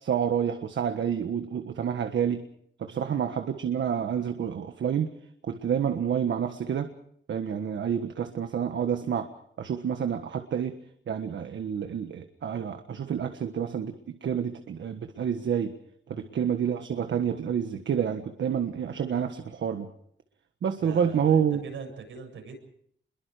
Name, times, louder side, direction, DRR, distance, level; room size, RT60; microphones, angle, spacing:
voice 1, 0.0-2.4 2.8-5.1 5.4-6.9 7.3-9.3 9.6-10.7 11.1-15.7 16.1-19.9 20.6-21.6, right 8 dB, 70° right, 7 dB, 1.5 m, -28 dB
voice 2, 20.8-22.6, right 5 dB, 90° right, 3 dB, 7.3 m, -43 dB
29.0 x 22.5 x 5.0 m, 0.67 s
wide cardioid pair, 160°, 20 cm